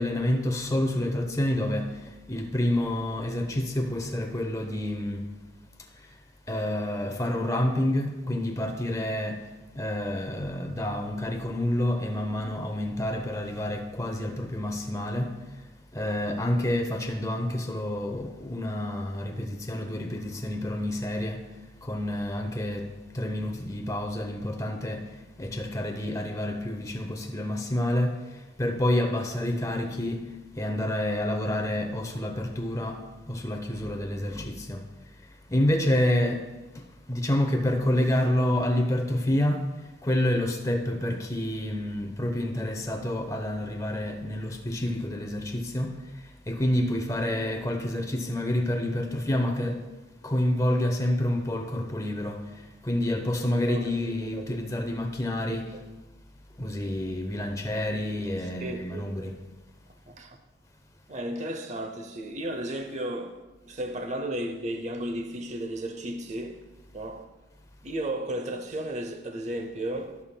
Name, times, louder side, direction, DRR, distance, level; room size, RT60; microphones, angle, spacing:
voice 1, 0.0-2.0 2.3-5.3 6.5-9.5 9.7-15.4 15.9-21.5 21.8-25.1 25.4-28.2 28.6-30.2 30.6-34.8 35.5-36.5 36.7-39.7 40.0-46.0 46.5-49.8 50.2-52.5 52.8-55.7 56.6-59.4, left 1 dB, 15° left, 0.8 m, -28 dB
voice 2, 53.7-54.6 55.5-55.8 58.5-59.3 60.1-60.4 61.1-66.6 66.9-67.3 67.8-70.2, right 1 dB, 35° right, 0.6 m, -34 dB
18.5 x 7.1 x 2.2 m
head